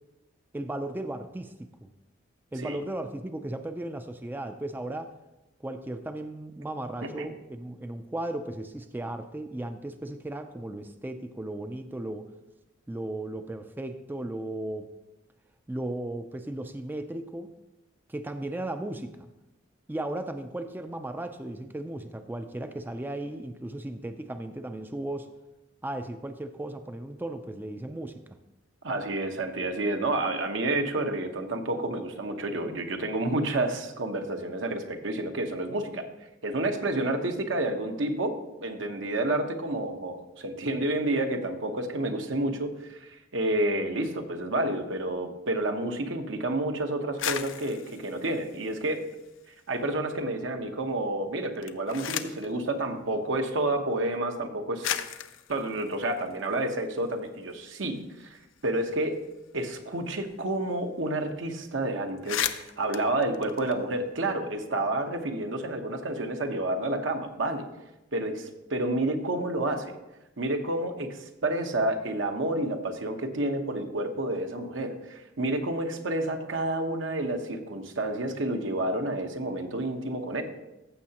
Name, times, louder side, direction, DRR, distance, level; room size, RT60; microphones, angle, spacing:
voice 1, 0.5-1.9 2.5-5.1 5.6-12.3 12.9-14.9 15.7-17.5 18.1-19.3 19.9-25.3 25.8-28.4, right 1 dB, 10° right, 8 dB, 0.3 m, -36 dB
voice 2, 28.8-36.1 36.4-49.0 49.7-55.0 55.5-59.2 59.5-67.6 68.1-69.9 70.4-80.4, right 1 dB, 75° right, 5 dB, 1.0 m, -30 dB
sound 1, 47.0-49.6 50.0-50.7 51.4-52.5 53.6-53.7 54.4-54.5 54.8-57.1 57.5-57.6 57.9-60.5 60.7-60.9 61.1-61.4 61.8-61.9 62.1-64.3, left 10 dB, 85° left, 0.5 m, -37 dB
15.0 x 6.5 x 2.9 m, 0.97 s
head